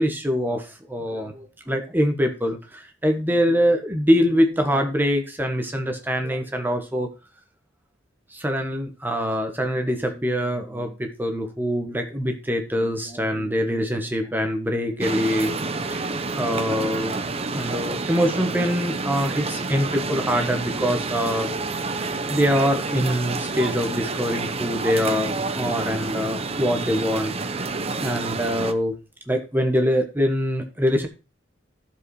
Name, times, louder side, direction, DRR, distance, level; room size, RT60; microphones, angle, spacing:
voice 1, 0.0-7.1 8.3-15.5 15.9-16.0 16.4-17.2 17.5-21.5 21.9-22.0 22.3-27.3 28.0-28.9 29.3-31.1, equal, 10° right, 4 dB, 1.3 m, -24 dB
sound 1, 15.0-28.7, right 3 dB, 30° right, 0.9 m, -29 dB
14.5 x 5.2 x 4.9 m, 0.31 s
head